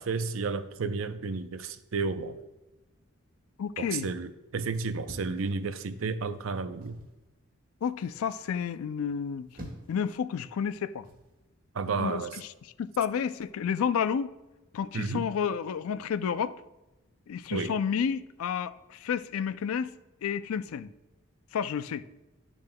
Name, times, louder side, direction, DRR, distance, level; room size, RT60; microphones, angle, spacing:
voice 1, 0.0-2.4 3.8-7.0 11.7-12.3 14.9-15.3 17.5-17.7, right 4 dB, 70° right, 0.5 m, -32 dB
voice 2, 3.6-4.1 7.8-9.5 9.9-11.1 12.0-12.5 12.8-14.3 14.7-16.6 17.3-19.9 20.2-20.9 21.5-22.0, left 7 dB, 80° left, 0.4 m, -30 dB
sound 1, 5.0-6.1 6.8-7.2 9.2-10.1 11.0-11.3, equal, 45° right, 1.5 m, -46 dB
11.5 x 7.1 x 2.2 m
head